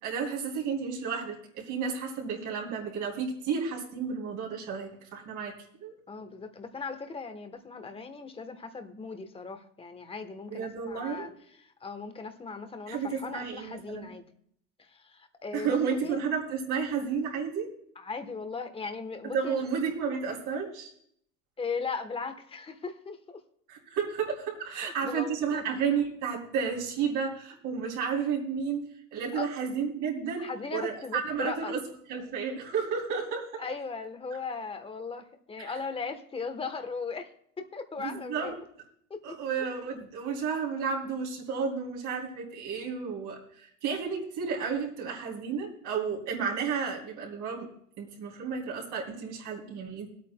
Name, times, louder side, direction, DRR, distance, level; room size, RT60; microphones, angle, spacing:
voice 1, 0.0-5.9 10.5-11.3 12.9-14.1 15.5-17.7 19.2-20.9 23.7-31.8 32.1-33.6 35.6-35.7 38.0-38.5 39.2-47.7 48.0-50.1, right 6 dB, 55° right, -2 dB, 3.1 m, -32 dB
voice 2, 6.1-11.3 11.6-14.2 14.8-16.2 18.0-19.6 21.6-23.4 24.7-25.6 29.3-29.5 30.4-31.7 33.6-37.3 37.6-38.6 39.1-39.3, left 4 dB, 15° left, 8 dB, 1.1 m, -38 dB
25.0 x 8.6 x 2.2 m, 0.66 s
supercardioid pair, 120°, 36 cm